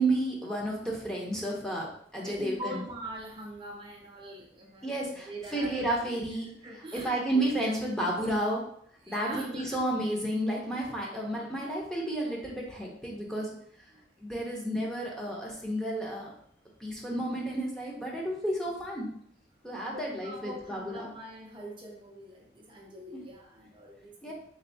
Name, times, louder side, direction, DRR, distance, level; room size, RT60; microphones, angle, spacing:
voice 1, 0.0-2.8 4.8-6.5 6.9-8.7 9.1-13.5 14.2-16.3 16.8-19.1 19.6-21.1 23.1-23.2 24.2-24.3, right 1 dB, 5° left, -3 dB, 0.8 m, -31 dB
voice 2, 2.2-6.2 6.6-7.4 7.7-8.1 9.0-9.8 13.9-14.1 19.8-24.3, right 1 dB, 30° right, -2 dB, 0.6 m, -43 dB
3.8 x 3.3 x 2.7 m, 0.64 s
head